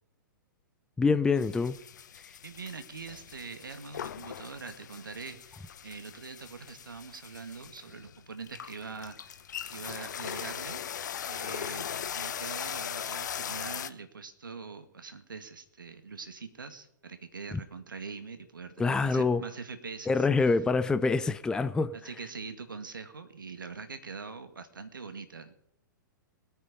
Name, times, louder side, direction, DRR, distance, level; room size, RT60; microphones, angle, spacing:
voice 1, 1.0-1.8 2.2-2.4 18.8-19.4 20.1-22.1, left 4 dB, 5° left, 12 dB, 0.5 m, -26 dB
sound 1, 1.4-13.9, left 9 dB, 60° left, 0.8 m, -40 dB
voice 2, 2.4-10.8 11.3-11.9 12.1-20.2 22.0-25.8, right 4 dB, 70° right, 9 dB, 2.1 m, -43 dB
20.5 x 9.4 x 5.4 m, 0.72 s
figure-of-eight pair, 110°, 11 cm